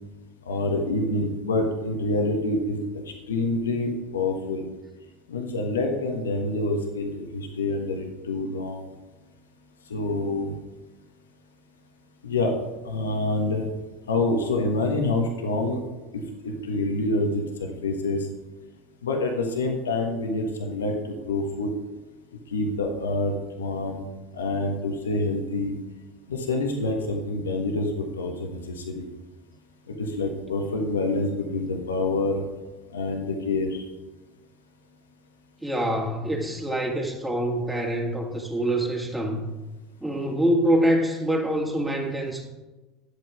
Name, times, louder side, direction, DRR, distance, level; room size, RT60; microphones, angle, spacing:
voice 1, 0.5-2.8 3.3-4.6 5.3-8.8 9.9-10.5 12.2-12.5 12.8-13.7 14.1-15.8 16.1-18.3 19.0-21.7 22.5-24.0 24.3-25.7 26.3-29.1 29.9-32.4 32.9-33.8, left 2 dB, 85° left, 3 dB, 1.3 m, -27 dB
voice 2, 35.6-39.4 40.0-42.5, right 1 dB, 5° right, 0 dB, 2.0 m, -25 dB
10.5 x 8.3 x 4.9 m, 1.2 s
hypercardioid pair, 75°, 0 cm